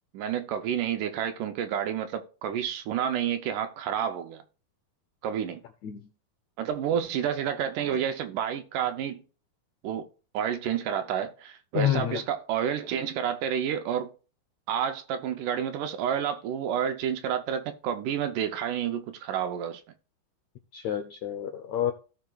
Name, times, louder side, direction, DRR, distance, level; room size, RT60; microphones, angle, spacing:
voice 1, 0.1-4.4 5.2-5.6 6.6-9.2 9.8-10.1 10.3-14.1 14.7-19.8, right 9 dB, 75° right, 2.0 m, -29 dB
voice 2, 11.7-12.2 20.7-21.9, left 10 dB, 90° left, 1.5 m, -28 dB
16.5 x 5.6 x 2.3 m
omnidirectional pair, 4.2 m